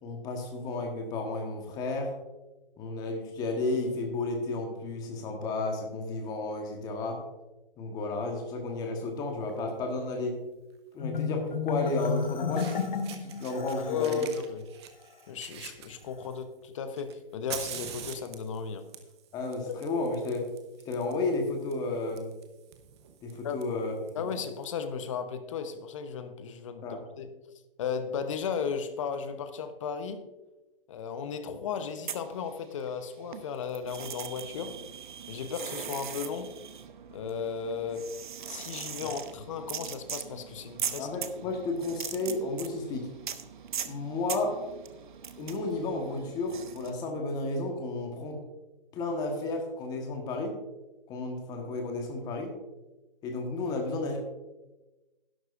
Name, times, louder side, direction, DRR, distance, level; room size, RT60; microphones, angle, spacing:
voice 1, 0.0-2.1 2.8-7.2 7.8-10.4 10.9-12.9 13.2-14.3 19.3-20.5 20.8-22.3 23.2-23.9 24.2-24.3 26.8-27.0 39.0-39.1 41.0-43.1 43.9-44.6 45.4-48.4 48.9-50.6 51.1-52.5 53.2-54.2, left 2 dB, 15° left, 2 dB, 1.3 m, -32 dB
Fire, 9.5-9.7 11.1-11.2 12.2-12.3 12.5-13.7 14.0-16.4 17.0-24.6, right 9 dB, 30° right, 0.9 m, -45 dB
Marimba xylophone, 11.0-14.3, left 7 dB, 55° left, 1.2 m, -32 dB
voice 2, 13.9-14.6 15.3-18.9 19.7-19.8 23.4-23.6 24.1-27.3 27.8-30.2 30.9-34.7 35.3-36.5 37.1-38.1 38.5-41.1, left 6 dB, 35° left, 9 dB, 0.9 m, -35 dB
sound 1, 31.9-33.0 33.3-46.9, right 8 dB, 55° right, 0.8 m, -40 dB
12.0 x 11.5 x 2.5 m, 1.1 s
hypercardioid pair, 145°, 29 cm